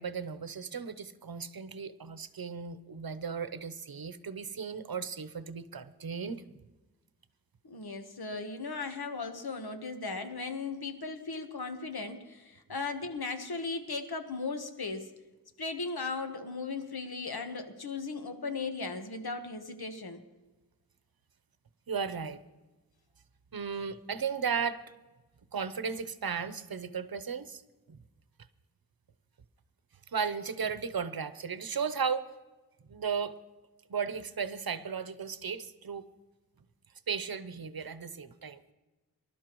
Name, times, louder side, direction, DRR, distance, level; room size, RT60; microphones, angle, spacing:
voice 1, 0.0-6.4 21.9-22.4 23.5-24.8 25.5-27.6 27.9-28.0 30.1-32.3 32.9-33.3 33.9-36.0 37.1-38.6, right 6 dB, 70° right, 0.8 m, -35 dB
voice 2, 7.6-15.1 15.6-20.2, left 4 dB, 80° left, 1.3 m, -37 dB
24.5 x 12.0 x 3.1 m
wide cardioid pair, 55°, 37 cm